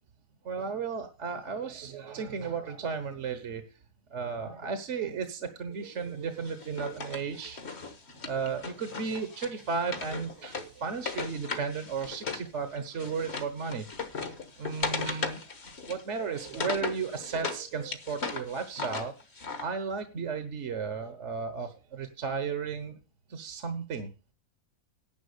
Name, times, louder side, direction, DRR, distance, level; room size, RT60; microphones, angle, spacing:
voice 1, 0.4-3.6 4.1-7.6 8.2-13.8 14.6-15.4 15.9-19.1 19.6-23.0 23.3-24.1, right 5 dB, 60° right, 9 dB, 1.4 m, -34 dB
Wood, 6.4-12.5 12.8-17.6 17.9-19.6, left 4 dB, 50° left, 1.7 m, -37 dB
11.0 x 6.1 x 6.6 m, 0.32 s
omnidirectional pair, 1.4 m